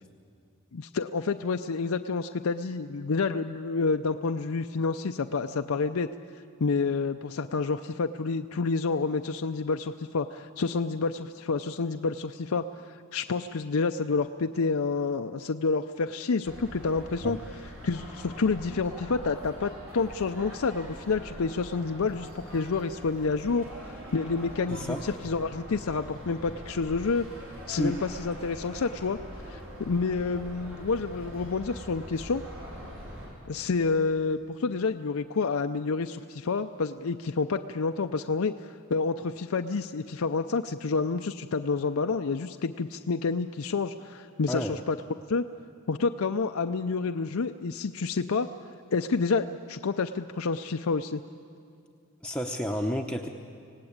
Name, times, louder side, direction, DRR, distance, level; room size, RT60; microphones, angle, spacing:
voice 1, 0.7-6.1 6.6-17.4 17.8-27.3 27.7-29.2 29.5-32.4 33.4-45.0 45.3-45.4 45.9-48.5 48.9-51.2, left 4 dB, 75° left, 7 dB, 0.6 m, -29 dB
sound 1, 16.4-33.3, equal, 65° right, 6.2 m, -43 dB
voice 2, 24.7-25.0 27.8-28.0 44.5-44.8 52.2-53.3, equal, 5° left, 1 dB, 0.8 m, -30 dB
26.0 x 18.0 x 8.8 m, 2.4 s
head